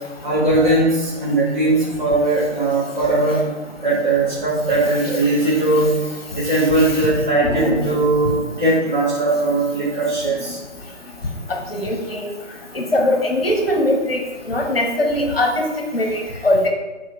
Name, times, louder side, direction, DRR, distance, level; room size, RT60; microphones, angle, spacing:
voice 1, 0.2-3.4 3.8-6.0 6.3-10.6, right 2 dB, 40° right, -8 dB, 1.5 m, -19 dB
voice 2, 6.5-7.0 7.4-8.0 11.5-12.3 12.7-14.2 14.5-15.6 15.9-16.7, left 1 dB, 55° left, 2 dB, 1.1 m, -21 dB
7.3 x 4.0 x 3.5 m, 1.2 s
figure-of-eight pair, 150°, 36 cm